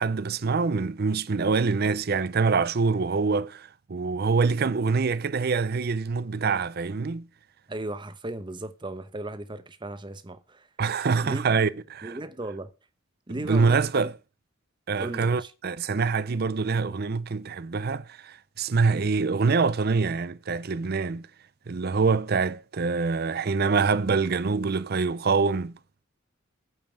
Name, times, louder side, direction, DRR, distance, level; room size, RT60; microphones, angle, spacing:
voice 1, 0.0-7.3 10.8-12.1 13.3-14.1 14.9-21.3 21.7-25.7, right 4 dB, 50° right, 0.5 m, -25 dB
voice 2, 7.7-10.7 11.2-11.6 12.0-12.7 13.3-14.1 15.0-15.5, right 2 dB, 25° right, 0.9 m, -36 dB
9.1 x 5.3 x 7.3 m
head